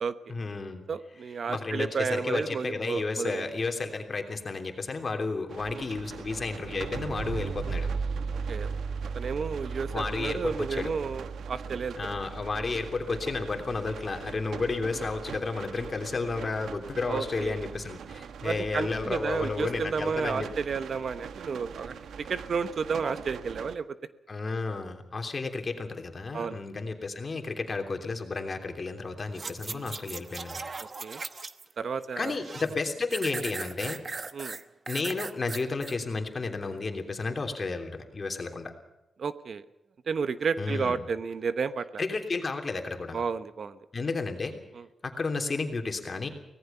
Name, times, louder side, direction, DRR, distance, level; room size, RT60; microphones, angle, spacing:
voice 1, 0.3-0.8 1.5-7.9 9.9-10.9 12.0-20.5 24.3-30.6 32.2-34.0 34.9-38.7 40.6-41.0 42.0-43.2 43.9-44.6 45.0-46.3, left 3 dB, 30° left, 5 dB, 3.2 m, -32 dB
voice 2, 0.9-3.4 5.7-5.9 8.5-8.7 9.1-11.9 17.0-17.6 18.4-21.9 22.3-24.0 26.3-26.6 29.7-29.9 31.0-31.2 31.8-32.4 34.3-34.6 39.2-39.6 40.1-42.0 43.1-43.8 44.7-44.8, right 5 dB, 50° right, 12 dB, 1.0 m, -32 dB
sound 1, 5.5-23.7, right 5 dB, 90° right, 1.2 m, -38 dB
sound 2, 29.3-31.7 32.0-32.7 33.1-35.9 36.4-36.5, right 4 dB, 35° right, 1.0 m, -38 dB
24.5 x 18.5 x 5.7 m, 0.92 s
wide cardioid pair, 140°, 0 cm